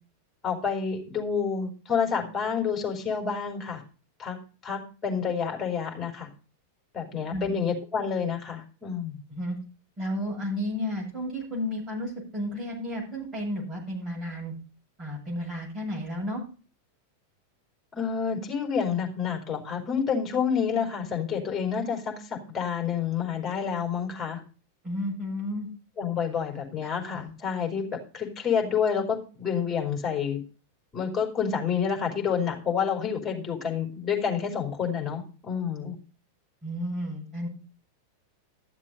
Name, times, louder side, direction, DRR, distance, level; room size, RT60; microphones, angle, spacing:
voice 1, 0.4-3.8 4.2-4.4 4.6-6.3 6.9-9.2 17.9-24.4 26.0-27.8 28.1-30.4 30.9-35.9, left 7 dB, 20° left, 0 dB, 5.2 m, -29 dB
voice 2, 10.0-14.5 15.0-16.4 24.8-25.7 36.6-37.5, equal, 25° right, -3 dB, 7.9 m, -32 dB
13.5 x 7.4 x 5.6 m, 0.36 s
figure-of-eight pair, 90°, 0 cm